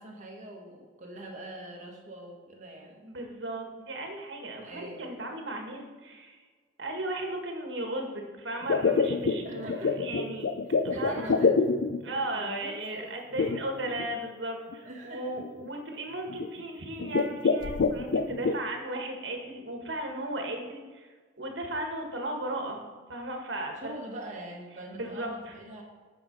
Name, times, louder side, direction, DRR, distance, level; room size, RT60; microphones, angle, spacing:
voice 1, 0.0-3.2 4.6-5.1 9.4-10.0 10.9-11.6 12.3-13.5 14.8-15.3 23.8-25.8, right 1 dB, 40° right, -2 dB, 1.8 m, -43 dB
voice 2, 3.1-6.4 6.8-10.5 10.8-11.3 12.0-23.9 24.9-25.5, right 1 dB, 70° right, 2 dB, 1.6 m, -36 dB
sound 1, 8.6-12.2 13.4-14.1 14.7-14.8 15.4-15.7 16.3-16.6 17.0-18.6, left 4 dB, 70° left, 0.5 m, -26 dB
9.5 x 5.1 x 5.3 m, 1.5 s
head